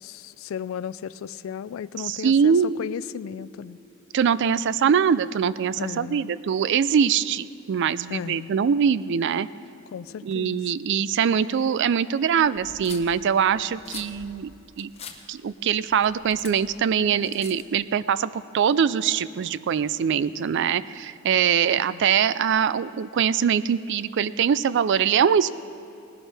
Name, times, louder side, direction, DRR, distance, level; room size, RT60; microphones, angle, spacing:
voice 1, 0.0-3.8 5.8-6.3 8.1-8.5 9.9-10.6 21.8-22.0, left 8 dB, 80° left, 17 dB, 0.3 m, -35 dB
voice 2, 2.0-2.7 4.1-9.5 10.2-14.9 15.3-25.5, right 7 dB, 60° right, 16 dB, 0.4 m, -23 dB
sound 1, 12.5-17.8, left 6 dB, 30° left, 0.9 m, -44 dB
19.0 x 11.5 x 3.4 m, 2.8 s
head